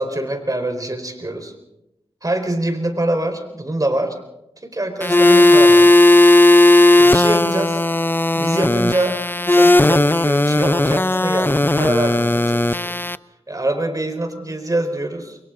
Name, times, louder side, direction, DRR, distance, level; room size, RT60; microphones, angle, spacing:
voice 1, 0.0-1.5 2.2-4.2 4.6-5.9 7.0-7.8 8.3-9.2 9.5-13.0 13.5-15.4, right 1 dB, 35° right, 5 dB, 4.5 m, -24 dB
sound 1, 5.0-13.2, left 2 dB, 20° left, 0.7 m, -14 dB
28.5 x 23.5 x 3.9 m, 0.88 s
cardioid pair, 50°, 10 cm